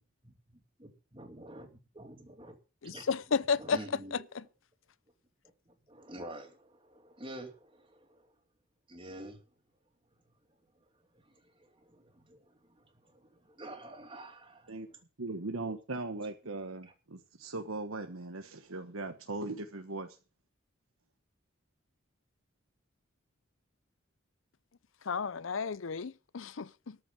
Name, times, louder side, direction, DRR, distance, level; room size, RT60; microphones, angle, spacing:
voice 1, 0.8-2.5 2.8-3.0 3.6-4.2 5.9-8.2 8.9-9.4 11.7-12.4 13.1-13.2 13.5-14.7, right 1 dB, 25° right, 3.0 m, -47 dB
voice 2, 2.8-3.8 4.1-4.4 25.0-27.0, left 5 dB, 65° left, 0.6 m, -32 dB
voice 3, 15.2-20.2, right 2 dB, 80° right, 1.3 m, -39 dB
13.5 x 6.3 x 9.1 m
head